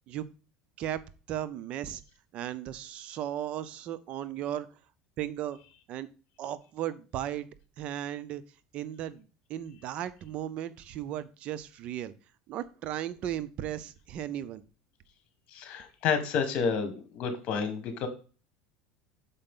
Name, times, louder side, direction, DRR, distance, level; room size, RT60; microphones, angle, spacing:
voice 1, 1.3-2.0 2.3-4.7 5.2-5.6 5.9-6.1 6.4-7.5 7.8-8.4 8.7-12.1 12.5-14.6, right 11 dB, 50° right, 15 dB, 0.5 m, -36 dB
voice 2, 15.5-18.1, left 6 dB, 50° left, 8 dB, 1.6 m, -30 dB
6.7 x 4.8 x 3.7 m, 0.34 s
supercardioid pair, 130°, 3 cm